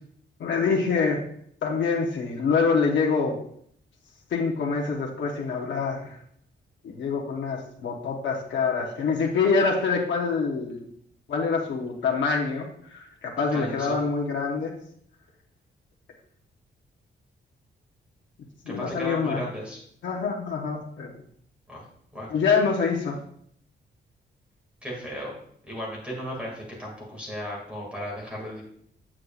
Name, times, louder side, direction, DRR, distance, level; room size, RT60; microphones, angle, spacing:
voice 1, 0.4-1.2 1.6-3.4 4.3-6.2 6.8-10.9 11.3-14.7 18.7-19.4 20.0-21.1 22.3-23.2, left 5 dB, 80° left, 0 dB, 0.9 m, -25 dB
voice 2, 13.5-14.0 18.7-19.8 21.7-21.8 22.1-22.3 24.8-25.3 25.7-28.6, equal, 5° right, -3 dB, 2.1 m, -35 dB
8.0 x 7.4 x 2.4 m, 0.66 s
wide cardioid pair, 175°, 19 cm